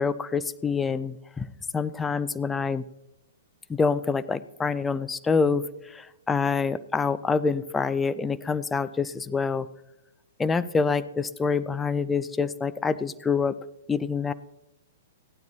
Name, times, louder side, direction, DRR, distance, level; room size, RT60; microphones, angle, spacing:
voice 1, 0.0-1.5 1.7-2.8 3.7-9.7 10.4-13.6 13.9-14.3, left 5 dB, 10° left, 14 dB, 0.4 m, -26 dB
16.0 x 12.0 x 2.8 m, 0.91 s
figure-of-eight pair, 110°, 0 cm